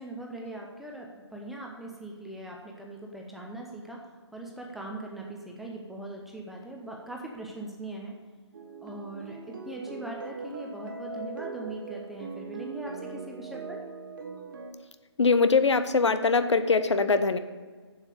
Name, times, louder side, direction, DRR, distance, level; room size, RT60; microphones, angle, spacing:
voice 1, 0.0-4.0 4.3-8.1 8.8-13.8, right 2 dB, ahead, -1 dB, 0.6 m, -40 dB
sound 1, 8.5-14.7, right 4 dB, 45° right, 1.0 m, -40 dB
voice 2, 15.2-17.4, left 4 dB, 75° left, 11 dB, 0.8 m, -22 dB
7.4 x 7.3 x 6.5 m, 1.5 s
figure-of-eight pair, 150°, 15 cm